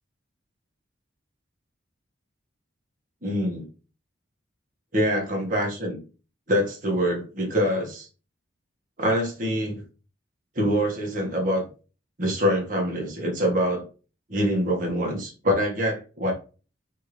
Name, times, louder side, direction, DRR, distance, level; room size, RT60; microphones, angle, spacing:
voice 1, 3.2-3.7 4.9-6.0 6.5-8.1 9.0-9.8 10.5-11.6 12.2-13.9 14.3-16.3, equal, 45° right, 0 dB, 1.6 m, -25 dB
3.7 x 3.5 x 3.2 m, 0.34 s
head